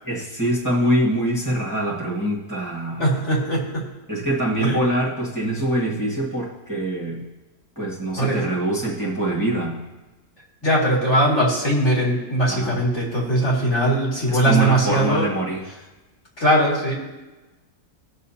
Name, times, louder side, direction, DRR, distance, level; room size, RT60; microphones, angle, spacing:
voice 1, 0.0-3.2 4.1-7.2 7.7-9.8 12.5-12.8 14.3-15.6, right 1 dB, 10° right, -5 dB, 1.5 m, -24 dB
voice 2, 3.0-3.9 4.6-4.8 8.1-8.4 10.6-15.3 16.4-17.0, right 1 dB, 45° left, -4 dB, 2.6 m, -20 dB
18.5 x 6.5 x 2.8 m, 1.1 s
omnidirectional pair, 1.7 m